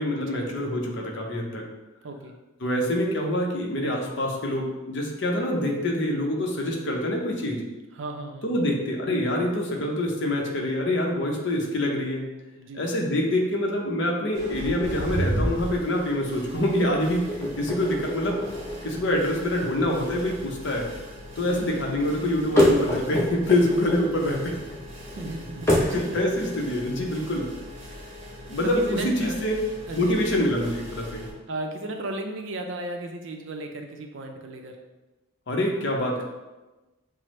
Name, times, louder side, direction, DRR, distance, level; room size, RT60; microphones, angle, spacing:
voice 1, 0.0-1.6 2.6-7.6 8.4-12.3 12.7-18.4 18.8-20.9 21.4-24.5 25.8-27.5 28.5-29.5 29.9-31.2 35.5-36.2, left 1 dB, 55° left, 0 dB, 0.7 m, -25 dB
voice 2, 2.0-2.4 7.9-8.6 12.6-12.9 21.4-21.9 25.0-26.2 27.9-28.0 28.4-29.4 29.9-30.2 31.5-34.8, right 2 dB, 60° right, 4 dB, 0.5 m, -35 dB
sound 1, 14.3-31.3, equal, 35° right, 0.7 m, -37 dB
sound 2, 17.3-26.0, left 1 dB, 15° left, 0.6 m, -28 dB
5.7 x 2.0 x 3.1 m, 1.1 s
head